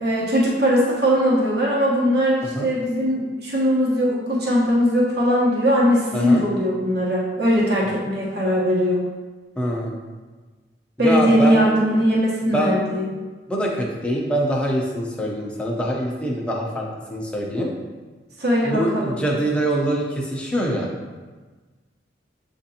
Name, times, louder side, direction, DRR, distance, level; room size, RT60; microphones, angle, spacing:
voice 1, 0.0-9.0 11.0-13.0 18.4-19.2, equal, 60° right, -6 dB, 1.1 m, -20 dB
voice 2, 9.6-10.0 11.0-11.6 12.5-12.8 13.5-17.7 18.6-20.9, equal, 5° left, -2 dB, 0.6 m, -24 dB
7.5 x 2.6 x 2.8 m, 1.3 s
head